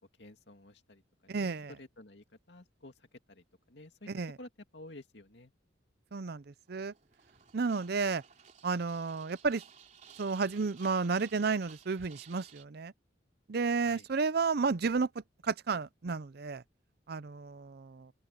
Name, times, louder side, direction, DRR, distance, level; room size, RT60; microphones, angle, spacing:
voice 1, 0.2-4.1 4.4-5.5 13.8-14.1, left 1 dB, 65° left, 2.6 m, -52 dB
voice 2, 1.3-1.7 4.1-4.4 6.1-6.9 7.5-8.2 8.6-9.6 10.2-12.9 13.5-16.6 17.1-18.1, right 4 dB, 55° right, 0.6 m, -32 dB
sound 1, 6.7-12.6, right 7 dB, 40° right, 3.4 m, -57 dB
open air
head